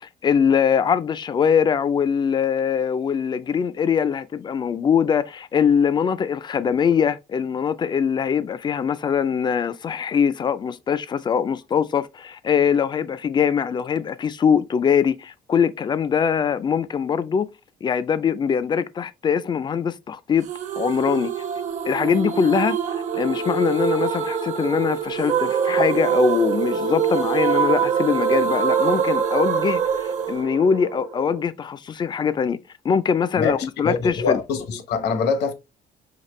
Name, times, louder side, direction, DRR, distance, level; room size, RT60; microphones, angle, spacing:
voice 1, 0.0-17.5 17.8-20.5 20.8-21.3 21.9-22.8 23.1-32.6 32.8-34.4, left 7 dB, 25° left, 0.3 m, -22 dB
sound 1, 20.5-31.4, right 7 dB, 45° right, 0.7 m, -24 dB
voice 2, 33.4-35.5, left 5 dB, 70° left, 1.1 m, -24 dB
5.7 x 2.9 x 3.1 m
cardioid pair, 145°, 18 cm